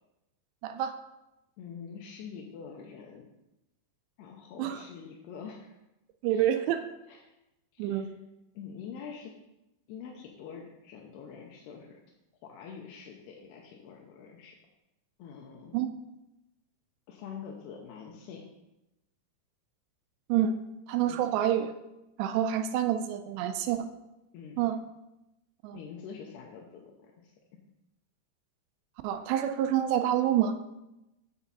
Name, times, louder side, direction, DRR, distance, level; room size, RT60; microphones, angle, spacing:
voice 1, 0.6-1.0 4.6-4.8 6.2-6.8 7.8-8.1 15.7-15.9 20.3-20.5 20.9-21.7 22.2-23.9 24.6-24.8 25.6-25.8 29.0-30.6, right 10 dB, 80° right, 8 dB, 2.7 m, -27 dB
voice 2, 1.6-3.3 4.2-5.8 6.3-6.7 7.1-7.4 7.7-8.1 8.5-9.3 9.9-12.0 12.4-14.6 15.2-15.8 17.1-18.5 21.1-21.3 24.3-24.6 25.7-27.3, left 6 dB, 80° left, 0 dB, 2.6 m, -45 dB
7.6 x 7.1 x 4.1 m, 0.92 s
omnidirectional pair, 5.1 m